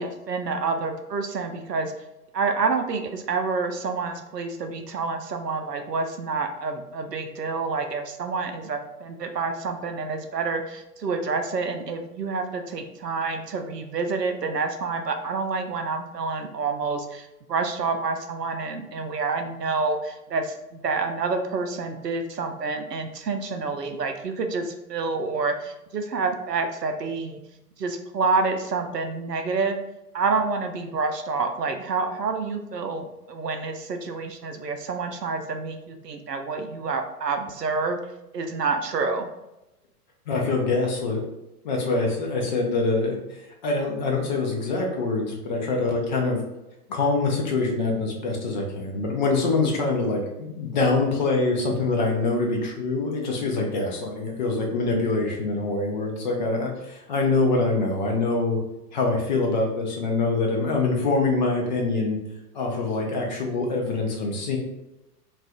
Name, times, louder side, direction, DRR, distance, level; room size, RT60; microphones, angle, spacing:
voice 1, 0.0-1.9 2.3-27.4 27.8-29.8 30.1-38.0 38.3-39.3, right 4 dB, 85° right, 6 dB, 0.6 m, -28 dB
voice 2, 40.3-41.2 41.6-46.4 46.9-58.6 58.9-62.2 62.5-64.6, left 3 dB, 30° left, 0 dB, 0.5 m, -24 dB
2.4 x 2.4 x 3.4 m, 0.94 s
figure-of-eight pair, 105°, 47 cm